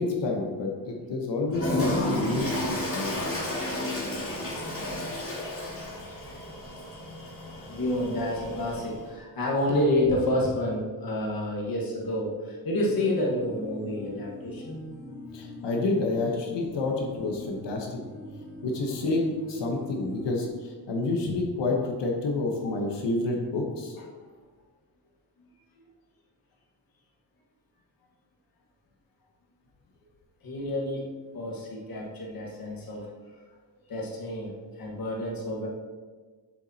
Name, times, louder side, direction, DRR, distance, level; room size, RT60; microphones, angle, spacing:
voice 1, 0.0-3.2 15.3-18.0 18.6-24.0, left 2 dB, 85° left, 1 dB, 1.1 m, -29 dB
Toilet flush, 1.5-9.0, left 1 dB, 30° left, 2.2 m, -32 dB
voice 2, 7.7-14.9 22.6-22.8 30.4-31.1 31.3-33.1 33.9-35.7, left 1 dB, 55° left, -3 dB, 1.5 m, -29 dB
sound 1, 12.8-20.5, left 2 dB, 10° right, 1.9 m, -42 dB
7.2 x 7.0 x 2.8 m, 1.4 s
wide cardioid pair, 100°, 42 cm